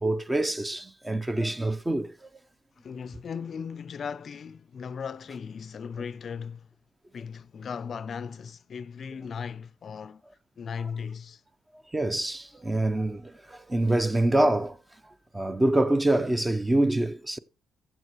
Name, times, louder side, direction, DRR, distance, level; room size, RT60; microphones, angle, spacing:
voice 1, 0.0-2.3 11.9-14.8 15.3-17.4, right 1 dB, 15° right, 0.6 m, -25 dB
voice 2, 2.8-6.7 7.1-10.2 10.6-11.4, left 6 dB, 50° left, 0.4 m, -37 dB
15.0 x 7.3 x 3.0 m
cardioid pair, 90°, 0 cm